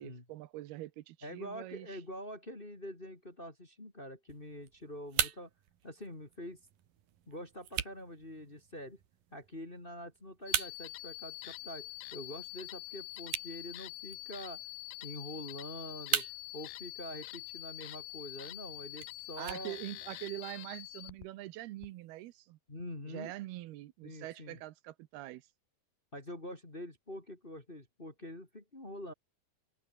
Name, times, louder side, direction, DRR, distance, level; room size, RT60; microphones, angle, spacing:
voice 1, 0.0-2.0 19.4-22.6 23.1-25.5, right 16 dB, 80° right, 2.9 m, -44 dB
voice 2, 1.2-5.5 5.8-6.6 7.3-9.0 9.3-14.6 15.0-16.3 16.5-19.8 22.7-23.3 24.0-24.6 26.1-29.1, equal, 15° left, 2.2 m, -45 dB
sound 1, 4.3-20.3, right 11 dB, 65° right, 3.4 m, -42 dB
sound 2, 10.5-21.3 21.8-21.9, left 22 dB, 90° left, 2.6 m, -46 dB
omnidirectional pair, 4.5 m